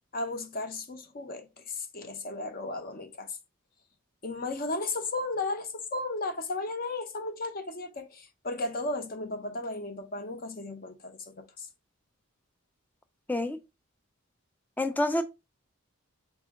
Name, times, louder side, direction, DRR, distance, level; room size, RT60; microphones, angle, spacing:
voice 1, 0.1-3.4 4.2-11.7, left 2 dB, 40° left, 0.7 m, -35 dB
voice 2, 14.8-15.2, left 1 dB, 10° left, 0.3 m, -27 dB
4.2 x 2.7 x 3.5 m
head